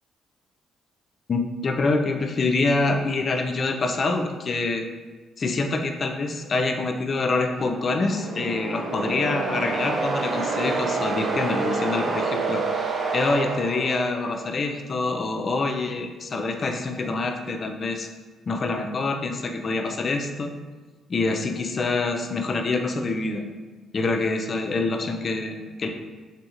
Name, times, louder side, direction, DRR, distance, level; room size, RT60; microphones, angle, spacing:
voice 1, 1.3-4.9 5.4-18.1 18.5-20.5 21.1-23.5 23.9-25.9, left 3 dB, 45° left, 4 dB, 0.3 m, -26 dB
sound 1, 7.5-14.5, right 3 dB, 45° right, 0.4 m, -28 dB
3.6 x 2.8 x 2.4 m, 1.3 s
cardioid pair, 90°, 0 cm